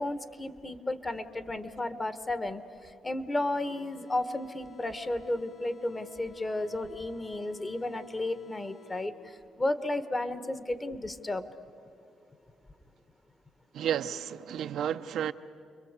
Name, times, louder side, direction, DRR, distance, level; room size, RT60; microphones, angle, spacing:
voice 1, 0.0-11.5, left 2 dB, 25° left, 1.3 m, -33 dB
sound 1, 3.5-9.5, left 1 dB, 65° left, 1.9 m, -56 dB
voice 2, 13.7-15.3, right 9 dB, 75° right, 0.6 m, -32 dB
29.5 x 22.5 x 8.2 m
cardioid pair, 90°, 0 cm